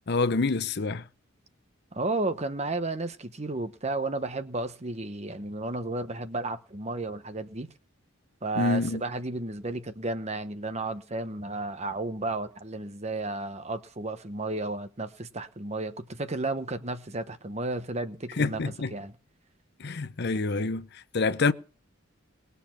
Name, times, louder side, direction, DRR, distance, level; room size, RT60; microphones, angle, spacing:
voice 1, 0.1-1.0 8.6-9.0 18.4-18.9 19.8-21.5, left 3 dB, 55° left, 0.7 m, -27 dB
voice 2, 1.9-7.7 8.4-18.6 18.9-19.1, right 2 dB, 30° right, 1.0 m, -33 dB
20.5 x 6.9 x 5.9 m
head